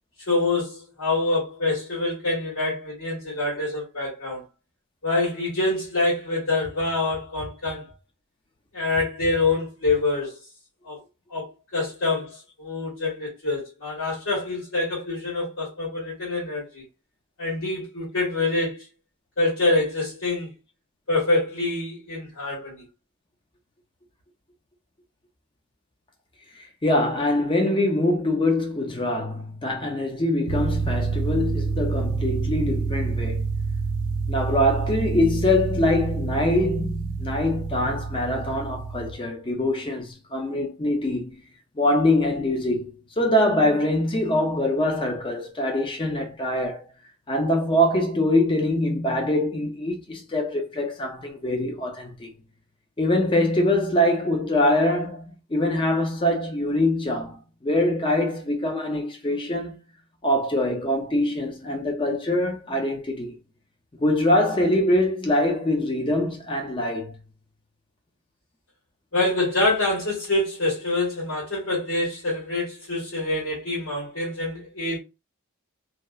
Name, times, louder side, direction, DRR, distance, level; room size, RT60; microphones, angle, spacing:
voice 1, 0.3-4.4 5.0-7.9 8.7-10.4 10.8-11.0 11.3-11.5 11.7-16.8 17.4-18.8 19.4-20.5 21.1-22.8 69.1-75.0, left 2 dB, 75° left, 1.5 m, -26 dB
voice 2, 26.8-33.5 34.3-41.4 41.8-46.9 47.3-52.3 53.0-59.8 60.2-63.3 64.0-67.1, left 1 dB, 25° left, 0.4 m, -24 dB
sound 1, 30.5-39.1, right 4 dB, 85° right, 0.4 m, -27 dB
2.7 x 2.0 x 2.3 m
head